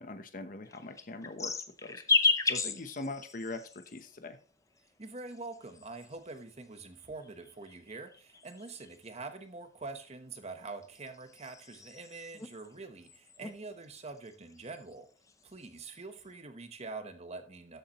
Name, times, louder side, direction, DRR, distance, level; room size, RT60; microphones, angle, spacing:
voice 1, 0.0-1.5 1.8-4.4, left 2 dB, 45° left, 0.9 m, -42 dB
sound 1, 0.7-4.1 5.0-6.4 7.2-9.1 10.5-12.7 13.1-13.6 13.8-14.9 15.3-15.9, left 4 dB, 15° left, 0.6 m, -34 dB
voice 2, 5.0-15.1 15.4-17.8, right 3 dB, 35° right, 1.0 m, -45 dB
13.0 x 7.1 x 3.0 m
head